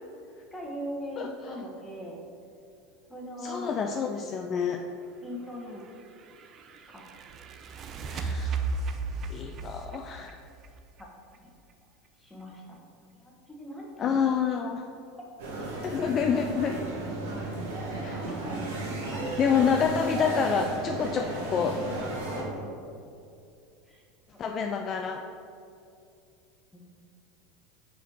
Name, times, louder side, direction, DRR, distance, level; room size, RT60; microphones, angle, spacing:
voice 1, 0.5-2.2 3.1-3.7 5.2-5.8 6.9-7.1 11.3-11.5 12.2-12.8 13.1-14.1 15.2-15.3 18.2-18.5 19.1-19.4 21.0-21.2 22.3-22.7 23.9-24.0 26.7-26.8, equal, 5° left, -2 dB, 1.3 m, -40 dB
voice 2, 1.2-1.5 3.4-4.8 8.1-8.8 9.3-10.4 14.0-14.8 15.8-16.8 18.0-18.2 19.4-21.8 24.4-25.2, left 6 dB, 35° left, 4 dB, 0.3 m, -28 dB
sound 1, 5.6-11.4, right 4 dB, 35° right, 0.4 m, -35 dB
sound 2, 15.4-22.4, right 2 dB, 65° right, 1.3 m, -34 dB
4.8 x 4.5 x 4.6 m, 2.5 s
figure-of-eight pair, 80°, 0 cm